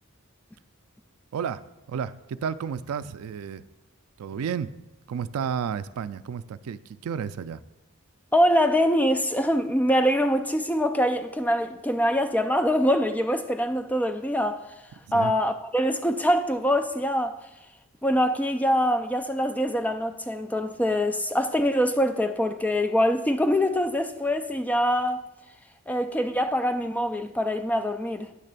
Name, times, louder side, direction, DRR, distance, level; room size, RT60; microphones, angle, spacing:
voice 1, 1.3-3.6 4.2-4.7 5.1-7.6 15.1-15.3, right 7 dB, 85° right, 0.3 m, -32 dB
voice 2, 8.3-14.6 15.1-17.4 18.0-25.2 25.9-28.3, equal, 5° left, 0.3 m, -24 dB
9.5 x 3.2 x 6.8 m
head